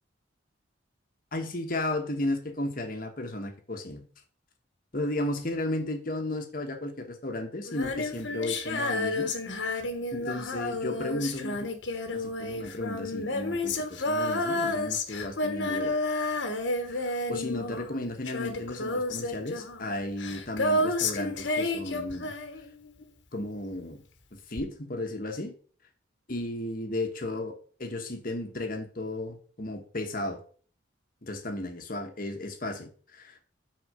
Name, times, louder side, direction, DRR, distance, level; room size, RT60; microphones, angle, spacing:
voice 1, 1.3-4.0 4.9-9.3 10.1-11.7 12.1-15.9 16.9-22.3 23.3-24.0 24.5-25.5 26.3-30.4 31.2-33.5, left 1 dB, 45° left, 5 dB, 1.2 m, -34 dB
Female singing, 7.7-23.0 24.6-24.7, left 2 dB, 70° left, 1.3 m, -31 dB
6.4 x 4.2 x 6.5 m, 0.43 s
head